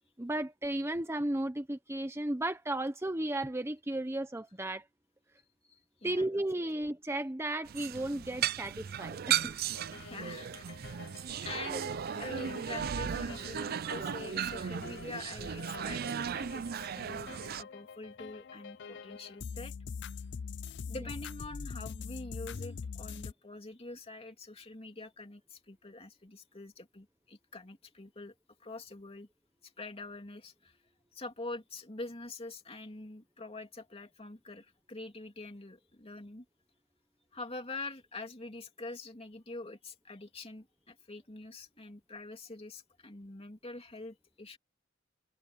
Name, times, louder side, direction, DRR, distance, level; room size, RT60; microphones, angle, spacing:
voice 1, 0.2-4.8 6.0-9.6 11.7-11.8, right 1 dB, 15° right, 1.0 m, -34 dB
voice 2, 5.7-6.4 6.7-6.8 9.9-11.0 11.3-16.0 16.5-17.3 17.6-19.7 20.9-28.3 28.6-29.3 29.6-30.8 31.1-36.4 37.3-44.6, left 2 dB, 30° left, 2.9 m, -45 dB
sound 1, 7.7-17.6, right 9 dB, 50° right, 0.4 m, -36 dB
sound 2, 9.6-23.3, left 5 dB, 60° left, 0.5 m, -45 dB
head